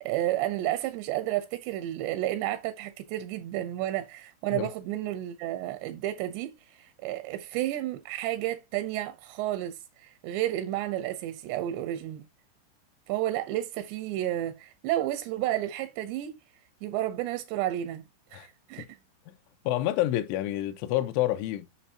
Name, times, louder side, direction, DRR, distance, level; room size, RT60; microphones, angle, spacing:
voice 1, 0.0-12.3 13.1-16.4 16.8-18.0 18.3-18.9, right 14 dB, 80° right, 2.6 m, -31 dB
voice 2, 19.7-21.7, left 14 dB, 80° left, 3.1 m, -28 dB
9.3 x 5.7 x 2.8 m
omnidirectional pair, 5.7 m